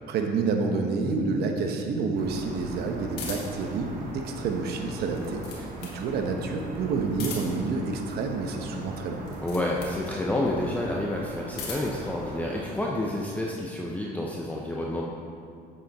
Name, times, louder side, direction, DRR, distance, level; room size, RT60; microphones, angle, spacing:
voice 1, 0.1-9.2, right 4 dB, 70° right, 3 dB, 0.9 m, -29 dB
sound 1, 2.1-12.6, right 2 dB, 55° right, 1.4 m, -41 dB
sound 2, 3.2-3.7 5.0-6.0 7.1-7.7 9.2-10.0 11.2-12.0, left 5 dB, 85° left, 1.7 m, -39 dB
voice 2, 9.4-15.0, left 1 dB, 10° left, -3 dB, 0.7 m, -29 dB
7.6 x 7.3 x 4.0 m, 2.4 s
cardioid pair, 110°, 17 cm